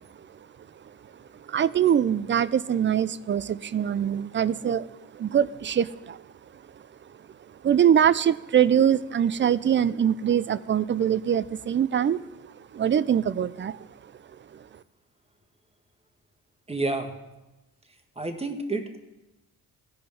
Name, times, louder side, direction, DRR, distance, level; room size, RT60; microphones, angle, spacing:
voice 1, 1.5-6.2 7.6-12.2 12.7-13.8, right 9 dB, 30° right, 17 dB, 0.4 m, -23 dB
voice 2, 16.7-17.1 18.2-19.0, right 2 dB, 15° right, 5 dB, 1.3 m, -29 dB
15.0 x 5.1 x 3.5 m, 1.0 s
supercardioid pair, 45°, 41 cm